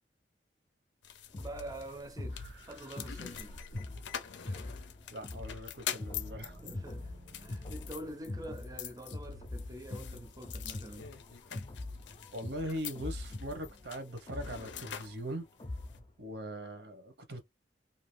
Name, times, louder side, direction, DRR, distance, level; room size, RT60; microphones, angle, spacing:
sound 1, 1.0-16.0, left 9 dB, 85° left, 0.5 m, -46 dB
sound 2, 1.3-16.1, left 2 dB, 30° left, 0.5 m, -44 dB
voice 1, 1.4-3.7 4.5-4.8 6.6-7.1 7.4-11.1, right 1 dB, 20° right, 0.6 m, -46 dB
sound 3, 2.3-4.3 6.0-8.4, right 1 dB, 90° right, 1.5 m, -56 dB
voice 2, 5.1-6.7 12.3-15.4 16.2-17.4, equal, 70° right, 0.9 m, -41 dB
2.6 x 2.4 x 3.2 m
head